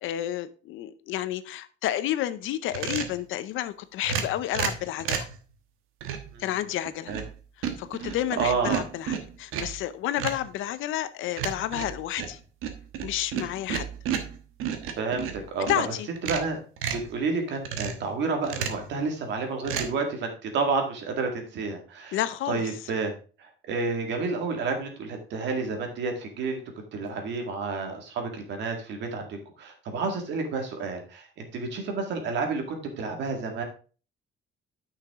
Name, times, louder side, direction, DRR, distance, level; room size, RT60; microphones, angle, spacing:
voice 1, 0.0-5.3 6.4-7.1 7.8-12.4 13.0-13.9 15.7-16.1 22.1-22.7, left 13 dB, 70° left, 0.7 m, -30 dB
sound 1, 2.7-3.2 4.0-5.4 6.0-6.3 6.9-7.4 7.6-9.8 10.2-10.5 11.4-15.8 16.2-17.1 17.7-18.1 18.4-18.9 19.6-19.9, right 8 dB, 75° right, 1.3 m, -32 dB
voice 2, 8.0-8.8 15.0-15.8 16.2-16.6 16.9-22.2 22.5-23.1 23.4-26.6 26.9-33.6, right 4 dB, 55° right, 2.0 m, -30 dB
9.6 x 5.8 x 3.6 m
cardioid pair, 175°, 21 cm